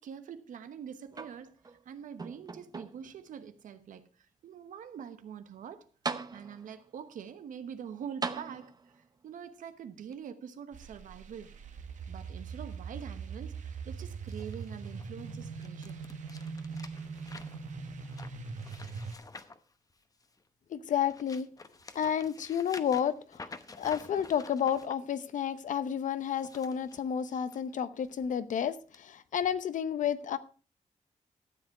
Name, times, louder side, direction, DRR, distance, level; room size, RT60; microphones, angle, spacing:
voice 1, 0.0-5.9 6.3-11.5 12.1-16.0, right 8 dB, 85° right, 1.1 m, -45 dB
sound 1, 1.1-1.8 2.2-3.2 3.9-4.0 5.6-5.7 6.0-6.8 8.2-9.1 10.1-10.2, right 4 dB, 30° right, 0.8 m, -39 dB
sound 2, 10.7-19.2, right 5 dB, 70° right, 1.4 m, -41 dB
sound 3, 14.3-20.4 20.9-24.9 26.2-27.6 28.0-28.3 28.9-29.0, left 3 dB, 25° left, 0.9 m, -50 dB
voice 2, 20.7-21.5 21.9-23.2 23.8-30.4, left 8 dB, 75° left, 0.8 m, -31 dB
12.5 x 7.7 x 4.8 m
cardioid pair, 95°, 13 cm